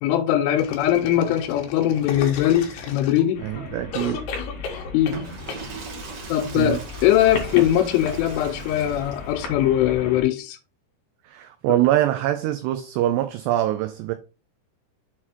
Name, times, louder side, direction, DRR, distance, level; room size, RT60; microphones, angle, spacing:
voice 1, 0.0-3.4 4.9-5.2 6.3-10.6, left 12 dB, 90° left, 3.3 m, -21 dB
sound 1, 0.6-3.5 3.9-5.2 5.5-5.7, left 5 dB, 65° left, 2.9 m, -35 dB
sound 2, 3.3-10.2, left 3 dB, 50° left, 3.4 m, -36 dB
voice 2, 3.4-4.2 6.6-6.8 11.2-14.1, right 13 dB, 85° right, 2.4 m, -23 dB
Water / Toilet flush, 5.0-9.5, right 5 dB, 60° right, 1.8 m, -40 dB
7.4 x 4.3 x 4.4 m
omnidirectional pair, 5.6 m